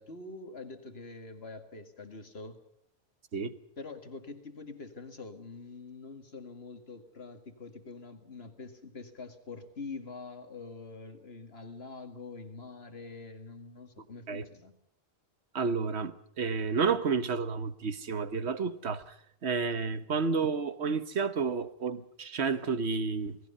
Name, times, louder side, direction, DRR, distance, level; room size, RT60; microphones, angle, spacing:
voice 1, 0.0-2.6 3.8-14.7, left 3 dB, 70° left, 2.3 m, -45 dB
voice 2, 15.5-19.1 19.4-23.4, right 5 dB, 90° right, 1.5 m, -31 dB
28.0 x 18.5 x 5.6 m
omnidirectional pair, 1.1 m